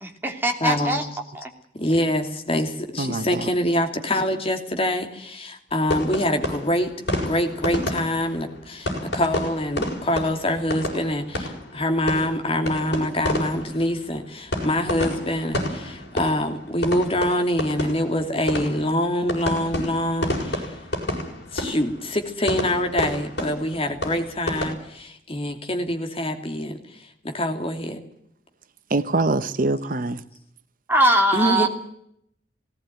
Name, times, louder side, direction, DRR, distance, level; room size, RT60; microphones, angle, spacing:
voice 1, 0.0-1.0 1.3-1.5 30.9-31.7, right 1 dB, 10° right, 3 dB, 2.8 m, -21 dB
voice 2, 0.6-1.1 1.7-6.9 7.2-20.8 21.5-28.0 31.3-31.7, left 1 dB, 30° left, 5 dB, 2.7 m, -25 dB
voice 3, 3.0-3.5 28.9-30.2, right 2 dB, 50° right, 12 dB, 0.9 m, -24 dB
sound 1, 5.9-24.7, left 1 dB, 65° left, 6.9 m, -30 dB
18.5 x 17.5 x 9.1 m, 0.72 s
head